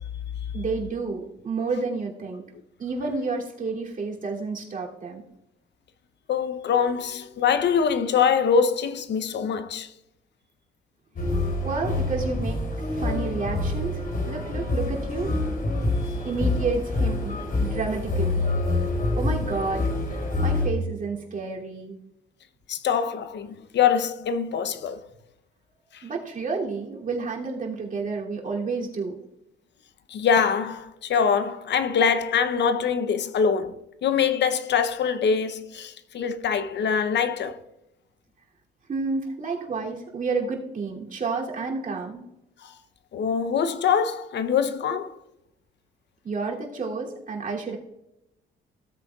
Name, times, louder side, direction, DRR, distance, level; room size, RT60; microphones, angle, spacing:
voice 1, 0.5-2.4 2.8-5.2 11.6-15.3 16.2-18.4 19.2-19.9 20.4-22.0 26.0-29.2 38.9-42.2 46.2-47.8, right 4 dB, 45° right, 2.8 m, -30 dB
voice 2, 6.3-9.9 20.3-20.4 22.7-25.0 25.9-26.0 30.1-33.8 34.0-37.6 42.6-42.7 43.1-45.1, left 6 dB, 60° left, 0.8 m, -24 dB
sound 1, 11.2-20.7, left 2 dB, 45° left, 2.9 m, -26 dB
16.5 x 8.2 x 2.4 m
cardioid pair, 90°, 20 cm